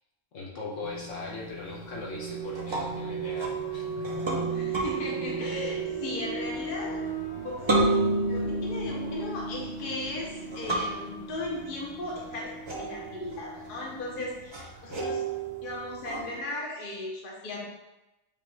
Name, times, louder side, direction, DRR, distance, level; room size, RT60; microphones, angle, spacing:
voice 1, 0.3-4.5 14.9-15.1, left 3 dB, 75° left, -2 dB, 1.1 m, -40 dB
sound 1, 0.8-16.4, right 2 dB, 30° right, 0.6 m, -33 dB
sound 2, 1.7-14.2, right 5 dB, 60° right, 1.6 m, -37 dB
voice 2, 4.5-7.0 7.3-7.9 8.3-15.2 15.6-17.6, left 2 dB, 45° left, -2 dB, 1.1 m, -37 dB
6.7 x 2.5 x 3.2 m, 0.97 s
omnidirectional pair, 1.3 m